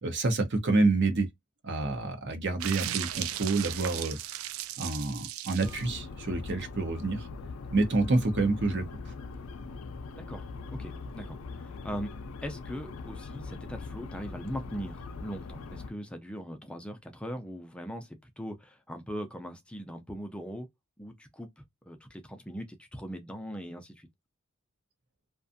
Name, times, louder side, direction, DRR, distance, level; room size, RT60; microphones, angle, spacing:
voice 1, 0.0-1.3 1.6-4.2 4.8-7.3 7.7-8.8, right 3 dB, 55° right, 0.7 m, -28 dB
sound 1, 2.6-5.9, right 12 dB, 75° right, 0.3 m, -36 dB
voice 2, 3.8-4.1 10.1-10.4 10.7-12.1 12.4-20.7 21.0-21.5 21.9-24.1, equal, 5° left, 0.4 m, -40 dB
sound 2, 5.6-15.9, left 4 dB, 80° left, 0.4 m, -41 dB
2.5 x 2.2 x 2.6 m
head